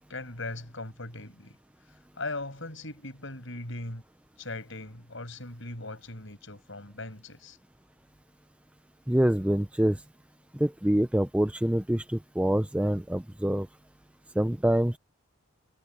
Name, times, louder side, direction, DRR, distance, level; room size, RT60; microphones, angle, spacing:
voice 1, 0.1-1.5 2.2-4.0 4.4-7.6, left 2 dB, 60° left, 6.9 m, -39 dB
voice 2, 9.1-10.0 10.6-13.7 14.4-15.0, right 1 dB, 5° right, 0.5 m, -25 dB
head